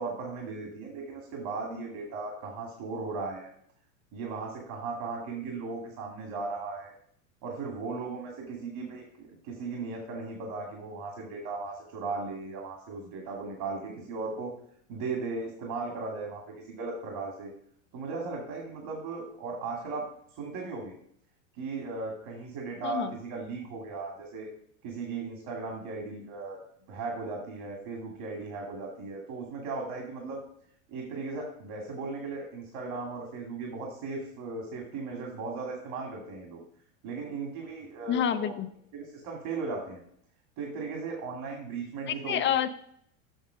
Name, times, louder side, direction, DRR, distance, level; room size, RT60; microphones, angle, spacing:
voice 1, 0.0-3.5 4.1-6.9 7.4-14.5 14.9-17.5 17.9-20.0 20.4-20.9 21.5-24.5 24.8-26.6 26.9-30.4 30.9-36.6 37.0-38.5 38.9-40.0 40.6-42.5, right 4 dB, 60° right, 0 dB, 2.5 m, -37 dB
voice 2, 38.1-38.7 42.1-42.8, left 9 dB, 30° left, 10 dB, 0.4 m, -28 dB
8.0 x 6.1 x 5.1 m, 0.67 s
supercardioid pair, 110°, 40 cm